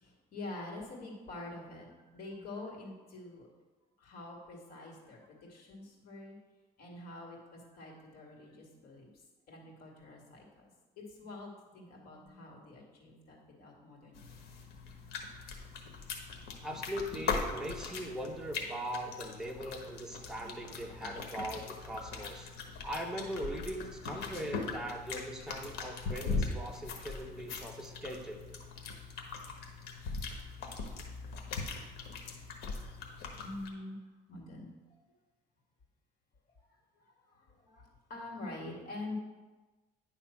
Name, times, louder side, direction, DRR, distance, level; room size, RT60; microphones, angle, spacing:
voice 1, 0.0-3.5 4.0-6.4 6.8-14.5 18.6-18.8 20.3-21.1 33.4-35.1 36.6-39.1, left 2 dB, 65° left, -1 dB, 2.3 m, -47 dB
sound 1, 14.1-33.7, left 4 dB, 85° left, 1.2 m, -40 dB
voice 2, 16.6-22.5 22.8-28.4, equal, 5° right, 0 dB, 1.1 m, -40 dB
10.0 x 3.5 x 5.9 m, 1.2 s
cardioid pair, 110°, 17 cm